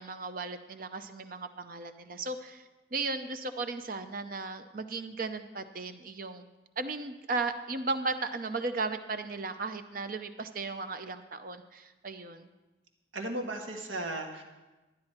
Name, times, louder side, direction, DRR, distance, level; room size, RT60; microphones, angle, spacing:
voice 1, 0.0-2.6 2.9-6.5 6.8-12.5, right 3 dB, 45° right, 9 dB, 0.6 m, -36 dB
voice 2, 13.1-14.4, right 1 dB, 85° right, 2 dB, 1.5 m, -35 dB
12.5 x 9.8 x 4.3 m, 1.1 s
head